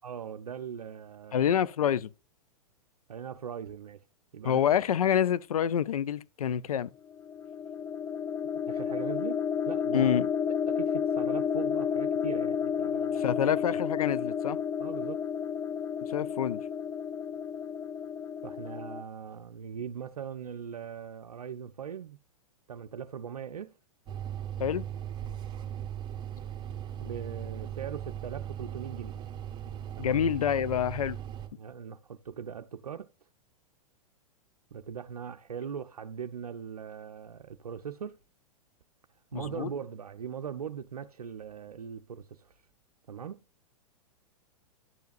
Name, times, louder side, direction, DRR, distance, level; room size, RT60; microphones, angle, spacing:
voice 1, 0.0-1.5 3.1-4.0 4.3-4.6 8.7-9.4 9.7-10.1 10.7-13.3 14.8-15.2 18.4-22.2 22.7-23.7 27.0-29.2 30.0-30.2 31.5-33.1 34.7-38.2 39.3-42.6 43.1-43.4, right 8 dB, 80° right, 0.5 m, -40 dB
voice 2, 1.3-2.1 4.4-6.9 9.9-10.3 13.2-14.6 16.1-16.6 24.6-24.9 30.0-31.2 39.3-39.7, left 9 dB, 70° left, 0.5 m, -27 dB
sound 1, 7.1-19.0, left 7 dB, 15° left, 0.4 m, -31 dB
sound 2, 24.1-31.5, right 10 dB, 25° right, 1.2 m, -38 dB
10.5 x 6.9 x 2.5 m
figure-of-eight pair, 100°, 19 cm